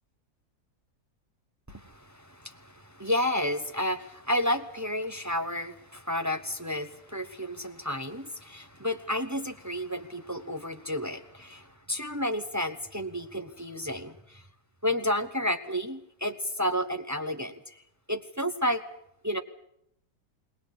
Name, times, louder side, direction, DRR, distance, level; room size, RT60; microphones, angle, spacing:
voice 1, 1.7-14.4 14.8-17.7 18.1-18.8 19.2-19.4, left 1 dB, 15° right, 6 dB, 0.8 m, -31 dB
21.0 x 19.0 x 8.4 m, 0.73 s
omnidirectional pair, 1.7 m